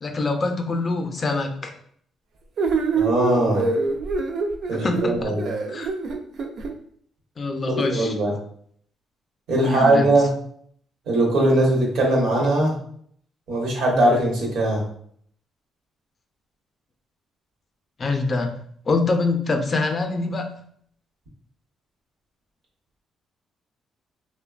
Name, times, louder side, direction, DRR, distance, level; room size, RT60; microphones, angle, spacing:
voice 1, 0.0-1.7 4.8-5.3 5.7-5.9 7.4-8.1 9.5-10.1 18.0-18.6 18.9-20.5, left 3 dB, 40° left, 5 dB, 0.4 m, -24 dB
sound 1, 2.6-6.7, right 4 dB, 65° right, 0.3 m, -25 dB
voice 2, 2.9-3.7 4.7-5.5 7.7-8.3 9.5-10.3 11.1-12.7 13.5-14.8, right 1 dB, 80° right, -1 dB, 0.9 m, -20 dB
3.0 x 2.1 x 2.3 m, 0.62 s
cardioid pair, 90°, 0 cm